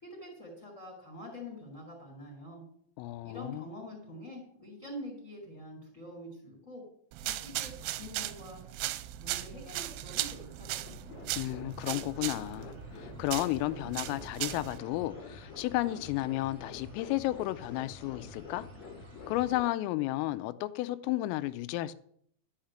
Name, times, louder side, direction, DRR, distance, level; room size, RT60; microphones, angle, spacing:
voice 1, 0.0-2.6 3.2-6.8 7.2-8.6 9.2-11.0, left 1 dB, 15° left, 3.3 m, -46 dB
voice 2, 3.0-3.7 11.4-18.7 19.3-21.9, left 16 dB, 85° left, 3.2 m, -33 dB
sound 1, 7.1-14.8, right 15 dB, 85° right, 2.9 m, -38 dB
sound 2, 9.9-19.6, right 1 dB, 25° right, 1.4 m, -57 dB
sound 3, 10.8-19.7, left 4 dB, 55° left, 3.0 m, -47 dB
13.0 x 5.7 x 8.7 m
omnidirectional pair, 5.9 m